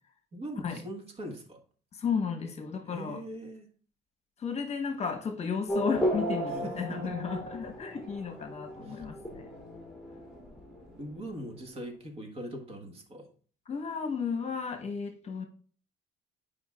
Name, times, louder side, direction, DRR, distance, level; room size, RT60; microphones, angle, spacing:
voice 1, 0.3-1.6 2.9-3.7 6.5-6.7 7.0-7.1 8.8-9.0 11.0-13.3, right 1 dB, 35° right, 1.5 m, -41 dB
voice 2, 1.9-3.2 4.4-9.5 13.7-15.4, left 5 dB, 40° left, 1.1 m, -33 dB
Race car auto racing / Accelerating revving vroom, 5.7-11.8, equal, ahead, 2.6 m, -35 dB
9.6 x 5.0 x 2.4 m
cardioid pair, 110°, 17 cm